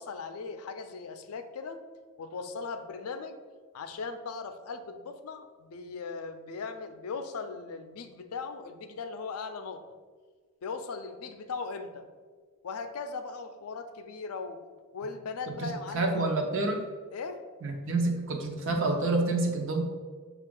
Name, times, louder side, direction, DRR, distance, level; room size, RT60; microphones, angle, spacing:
voice 1, 0.0-1.8 2.2-3.4 3.7-9.8 10.6-12.1 12.6-14.6 14.9-16.3 17.1-17.4, left 4 dB, 80° left, 8 dB, 0.4 m, -38 dB
voice 2, 15.6-16.8 17.6-19.8, right 2 dB, 60° right, 2 dB, 0.7 m, -28 dB
5.9 x 2.4 x 3.7 m, 1.5 s
head